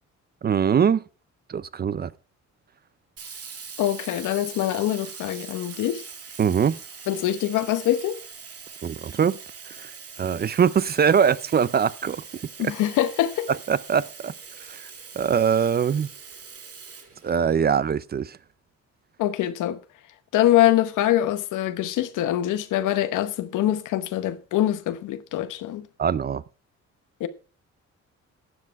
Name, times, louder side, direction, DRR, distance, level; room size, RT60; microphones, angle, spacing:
voice 1, 0.4-1.0 1.5-2.1 6.4-6.8 8.8-9.4 9.7-9.9 10.2-12.2 12.6-12.7 13.5-14.3 14.7-14.9 15.2-16.1 17.2-18.4 26.0-26.4, right 7 dB, 35° right, 0.5 m, -22 dB
Sink (filling or washing), 3.2-17.9, right 6 dB, 50° right, 2.1 m, -42 dB
voice 2, 3.8-6.1 7.1-8.2 12.6-13.5 19.2-19.8 20.3-25.9 27.2-27.3, left 13 dB, 85° left, 1.0 m, -24 dB
12.5 x 7.4 x 4.6 m
cardioid pair, 90°, 30 cm